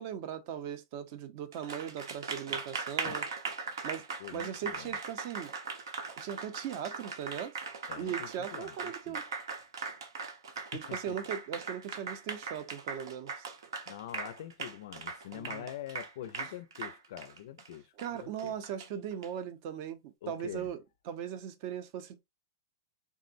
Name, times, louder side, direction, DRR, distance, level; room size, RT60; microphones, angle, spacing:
voice 1, 0.0-3.3 3.8-4.1 4.3-5.5 6.2-7.5 8.0-9.2 10.7-13.5 15.3-15.7 18.0-20.8 21.1-22.2, right 9 dB, 45° right, 0.5 m, -39 dB
Applause, 1.5-19.3, right 4 dB, 85° right, 0.7 m, -40 dB
voice 2, 4.2-5.0 7.9-9.2 10.5-11.1 13.9-18.6 20.2-20.7, left 11 dB, 65° left, 0.4 m, -45 dB
3.6 x 2.0 x 2.5 m
hypercardioid pair, 150°, 2 cm